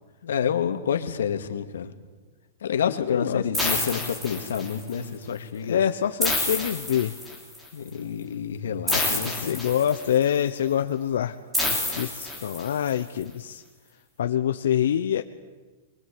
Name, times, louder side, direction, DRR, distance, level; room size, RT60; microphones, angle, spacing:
voice 1, 0.2-1.9 2.6-5.8 7.7-9.6, left 8 dB, 90° left, 7 dB, 2.3 m, -28 dB
voice 2, 3.0-3.4 5.7-7.1 9.1-11.3 11.7-13.6 14.2-15.2, left 10 dB, 65° left, 7 dB, 1.0 m, -25 dB
sound 1, 3.5-4.9 6.2-7.6 8.9-10.2 11.5-12.9, left 2 dB, 5° right, 3.4 m, -28 dB
25.5 x 23.0 x 8.6 m, 1.3 s
supercardioid pair, 180°, 0 cm